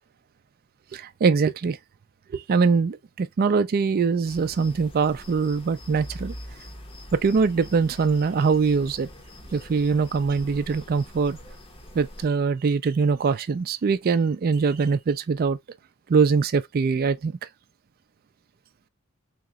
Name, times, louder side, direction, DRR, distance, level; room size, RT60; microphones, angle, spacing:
voice 1, 0.9-1.8 2.3-6.3 7.1-9.1 9.5-11.4 11.9-15.6 16.1-17.4, right 5 dB, 45° right, 0.4 m, -23 dB
sound 1, 4.2-12.3, equal, 25° left, 0.7 m, -43 dB
4.0 x 2.9 x 2.3 m
head